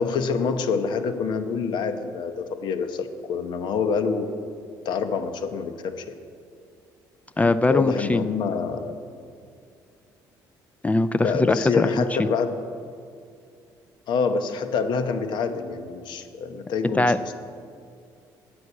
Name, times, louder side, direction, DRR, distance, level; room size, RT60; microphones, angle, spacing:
voice 1, 0.0-4.3 4.8-6.2 7.7-9.0 11.2-12.6 14.1-17.3, left 5 dB, 70° left, 8 dB, 0.9 m, -26 dB
voice 2, 7.4-8.2 10.8-12.0 16.9-17.3, left 2 dB, 15° left, 13 dB, 0.4 m, -21 dB
9.4 x 7.2 x 8.2 m, 2.3 s
cardioid pair, 85°, 8 cm